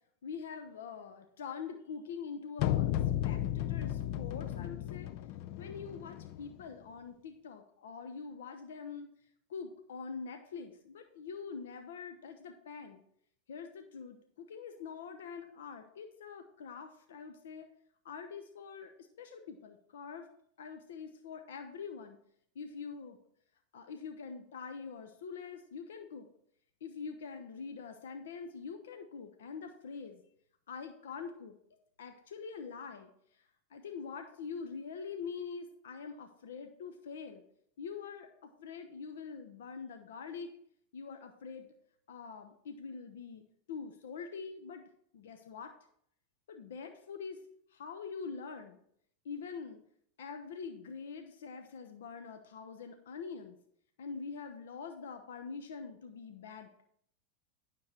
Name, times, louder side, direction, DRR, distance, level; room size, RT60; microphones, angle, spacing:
voice 1, 0.2-2.9 3.2-5.1 5.6-9.1 9.5-13.0 13.5-17.7 18.0-20.3 20.6-22.2 22.5-23.2 23.7-26.3 26.8-30.2 30.7-31.5 32.0-33.1 33.7-37.4 37.8-40.5 40.9-41.7 42.1-43.4 43.7-44.8 45.1-45.7 46.5-47.4 47.7-48.8 49.2-49.8 50.2-53.6 54.0-56.8, left 5 dB, 75° left, 7 dB, 0.9 m, -44 dB
sound 1, 2.6-6.6, left 12 dB, 55° left, 0.5 m, -34 dB
9.7 x 6.6 x 4.5 m, 0.67 s
hypercardioid pair, 100°, 0 cm